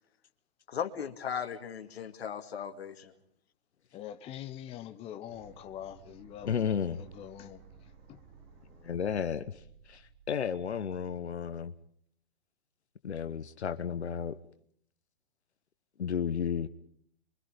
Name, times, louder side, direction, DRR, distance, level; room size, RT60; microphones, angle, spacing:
voice 1, 0.7-3.1, left 8 dB, 70° left, 2.3 m, -37 dB
voice 2, 3.9-8.2, left 11 dB, 20° left, 0.9 m, -45 dB
sound 1, 5.3-11.3, right 5 dB, 35° right, 6.3 m, -57 dB
voice 3, 6.4-7.0 8.8-11.7 13.0-14.4 16.0-16.7, left 7 dB, 85° left, 1.0 m, -33 dB
28.0 x 23.5 x 5.2 m
hypercardioid pair, 135°, 32 cm